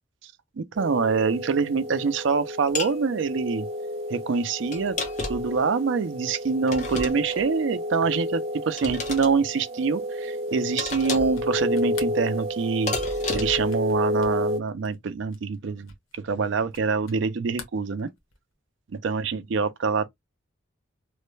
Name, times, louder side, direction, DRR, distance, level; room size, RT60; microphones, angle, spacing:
voice 1, 0.6-3.7 4.1-5.0 5.3-12.9 13.3-15.9 16.2-18.1 19.0-20.1, right 5 dB, 65° right, 0.4 m, -25 dB
sound 1, 0.8-14.6, equal, 30° right, 1.0 m, -31 dB
sound 2, 2.7-3.0 4.7-5.6 6.7-7.4 8.8-9.3 10.8-11.4 12.9-13.7, left 3 dB, 35° left, 0.9 m, -31 dB
sound 3, 11.3-17.2 17.5-18.5, left 4 dB, 80° left, 1.0 m, -46 dB
3.1 x 2.1 x 3.1 m
head